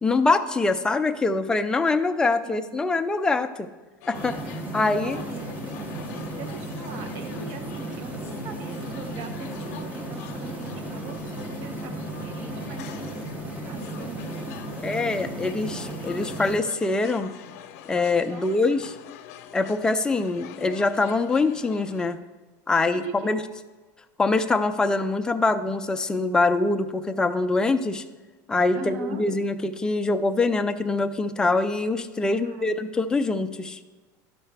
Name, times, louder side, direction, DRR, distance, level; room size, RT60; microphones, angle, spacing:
voice 1, 0.0-3.7 4.1-4.4 4.7-5.2 14.8-17.3 17.9-18.9 19.5-22.2 22.7-23.4 24.2-28.0 28.5-33.8, left 3 dB, 10° left, 7 dB, 0.4 m, -24 dB
voice 2, 2.4-2.8 5.0-5.5 6.1-14.1 18.2-18.6 22.9-23.6 28.7-29.2 32.2-32.8, right 4 dB, 60° right, 6 dB, 1.1 m, -41 dB
sound 1, 4.0-22.2, left 10 dB, 75° left, 0.7 m, -44 dB
sound 2, 4.1-16.6, right 1 dB, 20° right, 0.9 m, -35 dB
12.5 x 5.5 x 3.4 m, 1.3 s
supercardioid pair, 150°, 8 cm